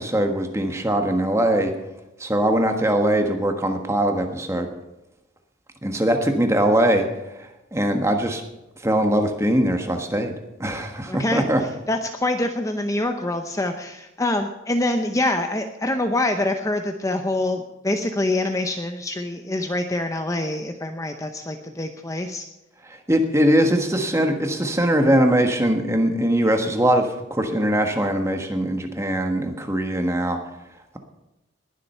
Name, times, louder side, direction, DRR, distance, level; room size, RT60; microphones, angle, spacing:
voice 1, 0.0-1.7 2.2-4.7 5.8-7.1 7.4-8.4 8.8-10.3 10.6-11.6 22.8-30.4, right 1 dB, 15° right, 5 dB, 1.4 m, -21 dB
voice 2, 11.1-22.4, left 1 dB, 15° left, 5 dB, 0.7 m, -25 dB
20.0 x 7.6 x 5.6 m, 0.96 s
head